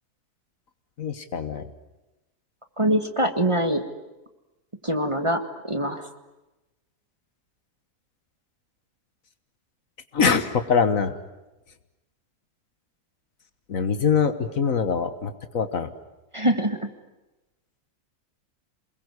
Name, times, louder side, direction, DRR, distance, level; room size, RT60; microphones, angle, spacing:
voice 1, 1.0-1.7 10.1-11.1 13.7-15.9, left 6 dB, 60° left, 10 dB, 1.7 m, -23 dB
voice 2, 2.8-3.8 4.8-6.1 16.3-16.9, right 1 dB, 20° right, 6 dB, 1.7 m, -24 dB
28.5 x 21.5 x 9.7 m, 1.0 s
omnidirectional pair, 1.6 m